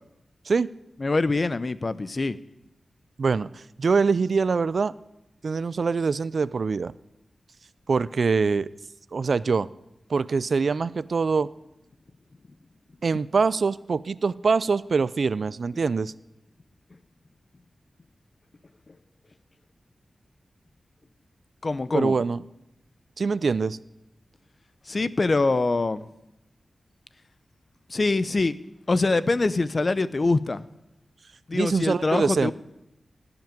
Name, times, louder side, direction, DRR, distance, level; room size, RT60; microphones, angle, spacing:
voice 1, 1.0-2.4 21.6-22.1 24.9-26.0 27.9-28.6 28.9-30.6 31.5-32.5, left 3 dB, 45° left, 0.6 m, -24 dB
voice 2, 3.2-4.9 5.4-6.9 7.9-8.7 9.1-9.7 10.1-11.5 13.0-16.1 21.9-22.4 23.2-23.8 31.5-32.5, right 4 dB, 65° right, 0.4 m, -24 dB
16.0 x 6.0 x 8.9 m
wide cardioid pair, 70°, 0 cm